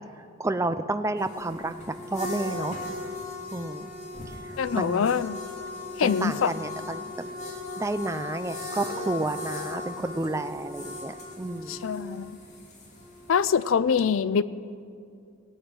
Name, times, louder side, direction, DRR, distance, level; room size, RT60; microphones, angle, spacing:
voice 1, 0.4-2.8 3.5-4.0 4.4-5.2 6.0-7.3 7.8-11.8, right 2 dB, 15° right, 11 dB, 0.4 m, -31 dB
sound 1, 1.2-13.6, left 2 dB, 35° left, 2.2 m, -37 dB
voice 2, 4.6-5.4 6.0-6.5 11.7-12.4 13.3-14.4, left 6 dB, 85° left, 17 dB, 0.4 m, -24 dB
18.5 x 8.1 x 6.1 m, 2.4 s
head